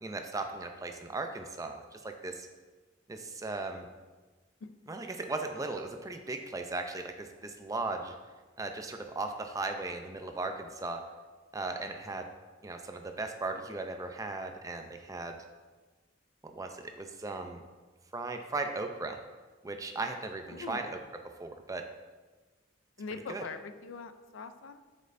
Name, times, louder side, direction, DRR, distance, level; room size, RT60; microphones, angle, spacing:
voice 1, 0.0-2.5 3.1-3.9 4.9-8.1 8.6-11.0 11.5-12.3 12.6-15.4 16.4-17.6 18.1-19.2 19.6-21.0 21.4-21.8 23.3-23.4, right 3 dB, 20° right, 5 dB, 0.5 m, -37 dB
voice 2, 20.5-20.9 23.0-24.8, left 4 dB, 85° left, 10 dB, 0.4 m, -42 dB
7.6 x 5.3 x 2.6 m, 1.3 s
head